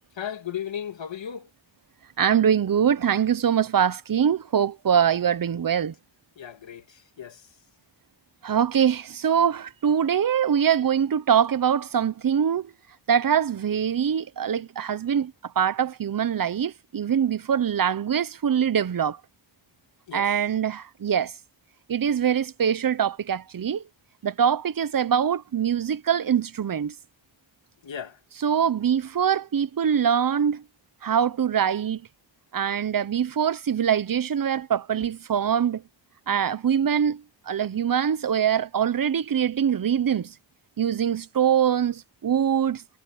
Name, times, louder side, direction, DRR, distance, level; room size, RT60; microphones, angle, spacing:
voice 1, 0.2-1.5 6.4-7.4 20.1-20.3 27.8-28.2, left 9 dB, 75° left, 2.9 m, -35 dB
voice 2, 2.2-5.9 8.4-12.7 13.1-19.2 20.1-21.3 21.9-23.8 24.2-26.9 28.4-30.6 31.0-32.0 32.5-35.8 36.3-37.2 37.5-40.3 40.8-42.8, right 8 dB, 50° right, 0.8 m, -23 dB
wide cardioid pair, 120°, 45 cm